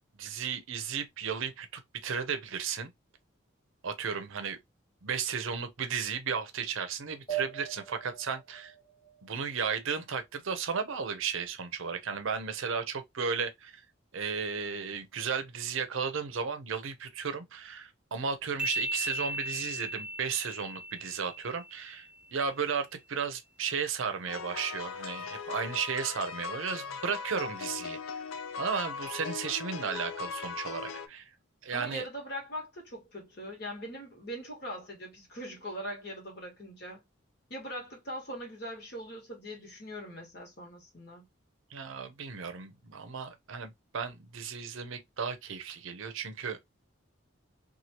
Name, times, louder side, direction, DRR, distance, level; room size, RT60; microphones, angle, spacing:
voice 1, 0.2-2.9 3.8-4.6 5.0-8.7 9.2-13.8 14.1-28.0 28.6-31.3 31.6-32.1 41.7-46.7, right 6 dB, 70° right, 0.6 m, -34 dB
sound 1, 7.3-10.2, right 11 dB, 30° left, 1.1 m, -40 dB
sound 2, 18.6-22.1, equal, 5° right, 0.6 m, -37 dB
sound 3, 24.3-31.1, left 5 dB, 80° left, 0.4 m, -39 dB
voice 2, 31.7-37.0 37.5-41.3, equal, 50° left, 1.3 m, -41 dB
2.8 x 2.4 x 2.8 m
head